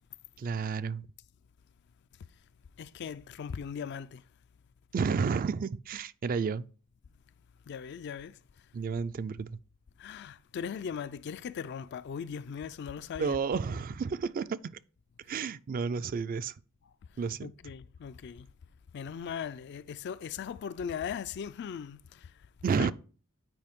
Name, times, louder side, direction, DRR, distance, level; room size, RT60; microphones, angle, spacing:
voice 1, 0.4-1.1 4.9-6.7 8.7-9.6 13.2-14.6 15.3-16.5 17.2-17.5 22.6-22.9, right 5 dB, 40° right, 0.3 m, -31 dB
voice 2, 2.8-4.2 7.7-8.4 10.0-13.4 17.4-18.5 18.9-22.4 22.8-22.9, left 7 dB, 50° left, 0.3 m, -39 dB
9.1 x 4.8 x 3.6 m
head